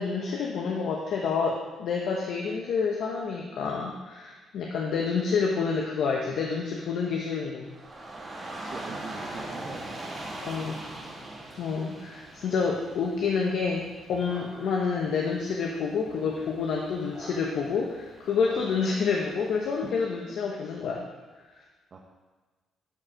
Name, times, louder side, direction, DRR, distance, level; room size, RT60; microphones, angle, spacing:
voice 1, 0.0-7.7 10.4-10.8 11.6-21.1, left 5 dB, 75° left, -1 dB, 1.1 m, -28 dB
Dog / Rain, 7.6-19.8, right 1 dB, 25° right, 2.9 m, -42 dB
voice 2, 8.6-10.3 19.8-19.9 21.9-22.0, right 4 dB, 50° right, 0 dB, 1.1 m, -42 dB
11.0 x 4.9 x 5.1 m, 1.3 s
cardioid pair, 90°, 0 cm